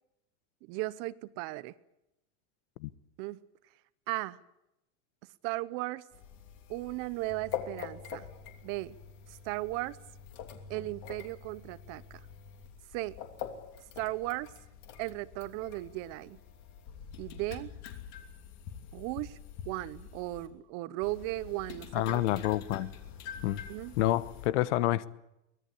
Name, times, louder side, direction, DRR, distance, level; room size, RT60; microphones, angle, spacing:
voice 1, 0.6-1.8 3.2-3.4 4.1-4.4 5.4-6.0 6.7-8.2 8.6-9.0 9.3-10.0 10.7-12.2 12.9-13.2 14.0-14.5 15.0-16.4 17.2-17.7 18.9-19.4 19.7-22.4 23.7-23.9, right 19 dB, 40° right, 18 dB, 0.8 m, -36 dB
sound 1, 6.1-20.5 21.0-24.5, left 8 dB, 45° left, 3.0 m, -45 dB
voice 2, 21.9-22.9 23.4-23.6 24.0-25.1, left 14 dB, 70° left, 17 dB, 1.1 m, -28 dB
24.0 x 18.0 x 8.5 m, 0.87 s
supercardioid pair, 170°, 37 cm